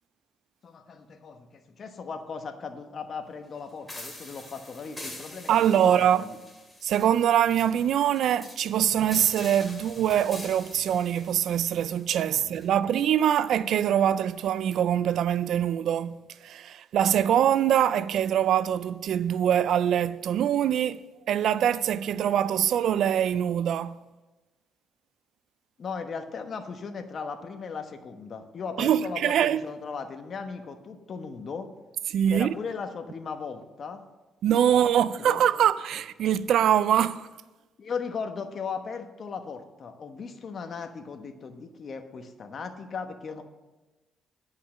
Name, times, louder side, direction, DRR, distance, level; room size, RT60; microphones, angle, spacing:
voice 1, 0.6-5.5 5.8-6.4 12.3-12.9 25.8-31.7 32.3-34.0 34.7-35.4 37.8-43.4, left 5 dB, 50° left, 1.1 m, -37 dB
sound 1, 3.9-12.7, left 1 dB, 10° left, 2.5 m, -45 dB
voice 2, 5.5-6.2 6.8-21.0 21.3-24.0 28.8-29.6 32.1-32.5 34.4-37.3, right 10 dB, 75° right, 0.4 m, -24 dB
10.5 x 5.6 x 7.5 m
cardioid pair, 90°, 0 cm